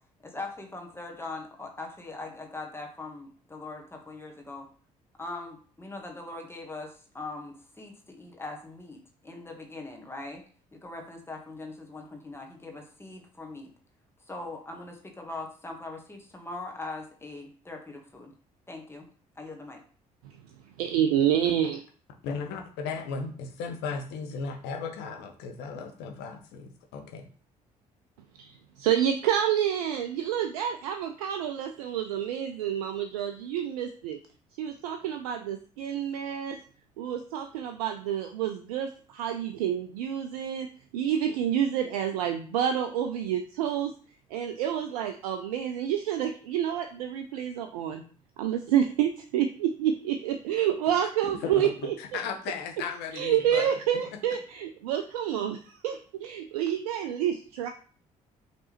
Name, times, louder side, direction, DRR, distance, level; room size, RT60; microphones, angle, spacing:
voice 1, 0.2-4.7 5.2-6.9 7.1-9.0 9.2-10.4 10.7-13.7 14.3-18.3 18.7-19.0 19.4-19.8, left 2 dB, 10° left, 2 dB, 1.3 m, -41 dB
voice 2, 20.8-21.8 28.4-34.2 34.6-36.6 37.0-43.9 44.3-48.0 48.4-51.9 53.1-57.7, right 10 dB, 70° right, 6 dB, 0.4 m, -28 dB
voice 3, 22.2-27.3 51.4-51.5 52.0-53.8, left 5 dB, 60° left, 5 dB, 0.9 m, -36 dB
5.2 x 3.2 x 3.0 m, 0.43 s
figure-of-eight pair, 50°, 19 cm